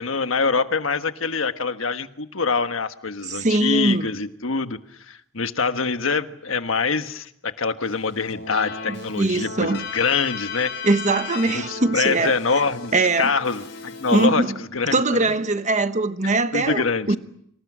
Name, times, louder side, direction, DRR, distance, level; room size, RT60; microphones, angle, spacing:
voice 1, 0.0-10.7 11.5-12.9 13.2-15.3 16.5-17.2, left 4 dB, 90° left, 1.4 m, -25 dB
voice 2, 3.2-4.1 9.1-9.8 10.8-12.3 12.9-13.3 14.1-14.6 14.9-17.2, right 2 dB, 35° right, 1.3 m, -21 dB
Keyboard (musical), 7.8-14.3, left 5 dB, 60° left, 6.4 m, -36 dB
29.0 x 26.0 x 6.2 m
head